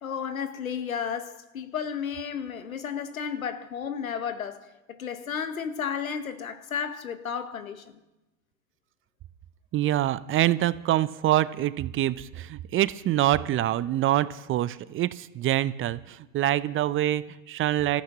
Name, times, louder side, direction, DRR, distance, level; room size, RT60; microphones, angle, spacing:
voice 1, 0.0-8.0, left 7 dB, 90° left, 1.1 m, -33 dB
voice 2, 9.7-18.0, right 13 dB, 30° right, 0.6 m, -25 dB
26.0 x 14.5 x 2.9 m
hypercardioid pair, 85°, 40 cm